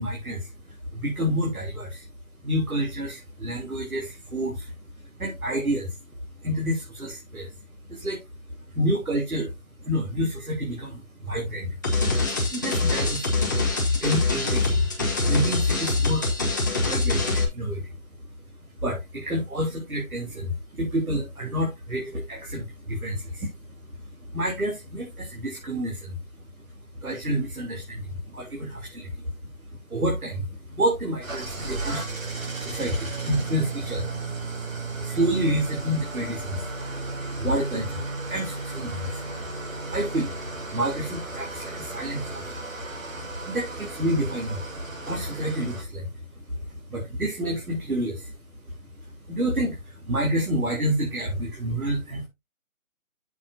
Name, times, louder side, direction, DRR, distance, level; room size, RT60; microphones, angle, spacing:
voice 1, 0.0-2.1 2.4-4.7 5.2-6.0 6.4-7.5 7.9-8.2 8.7-9.5 9.8-11.8 12.5-13.5 13.9-14.9 15.2-16.3 16.8-18.0 18.8-23.8 24.1-26.5 27.0-29.3 29.6-34.2 34.7-36.8 37.0-39.5 39.9-42.6 43.1-48.4 48.8-52.3, equal, 90° right, 3.5 m, -29 dB
sound 1, 11.8-17.4, left 3 dB, 15° left, 1.1 m, -24 dB
Engine starting / Idling, 31.2-45.8, right 3 dB, 65° right, 4.4 m, -35 dB
9.2 x 7.4 x 2.7 m
figure-of-eight pair, 170°, 42 cm